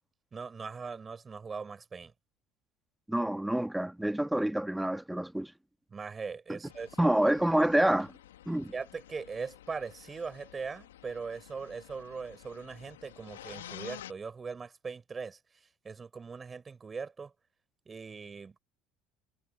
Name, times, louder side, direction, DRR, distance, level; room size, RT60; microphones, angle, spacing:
voice 1, 0.3-2.1 5.9-7.0 8.7-17.3 17.9-18.6, right 5 dB, 30° right, 4.7 m, -40 dB
voice 2, 3.1-5.5 6.5-6.6 7.0-8.1 8.5-8.7, right 1 dB, 5° right, 1.8 m, -27 dB
sound 1, 6.7-14.1, left 12 dB, 85° left, 2.2 m, -51 dB
hypercardioid pair, 70°, 0 cm